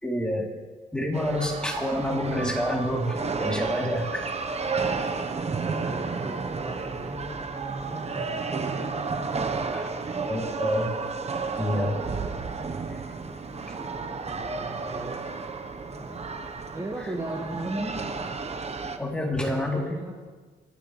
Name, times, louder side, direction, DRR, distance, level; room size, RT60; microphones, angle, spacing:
voice 1, 0.0-0.5 0.9-4.3 9.7-9.9 10.3-10.9 11.6-12.0 12.9-13.0 19.0-19.8, left 1 dB, 5° left, -2 dB, 3.5 m, -28 dB
sound 1, 1.1-19.0, right 4 dB, 30° right, 1.2 m, -32 dB
voice 2, 5.8-8.9 13.5-15.3 15.9-16.4 16.7-18.1 19.2-20.1, right 2 dB, 15° right, -2 dB, 2.0 m, -38 dB
28.5 x 10.0 x 3.4 m, 1.4 s
cardioid pair, 90°, 20 cm